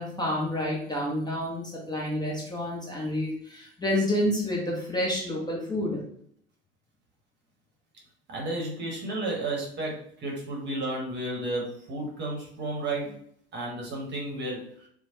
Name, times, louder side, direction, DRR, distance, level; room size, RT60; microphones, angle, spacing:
voice 1, 0.0-6.0, left 1 dB, 10° left, -3 dB, 0.7 m, -29 dB
voice 2, 8.3-13.2 13.5-14.9, right 2 dB, 30° right, -1 dB, 1.0 m, -32 dB
3.0 x 2.1 x 2.7 m, 0.64 s
hypercardioid pair, 75°, 34 cm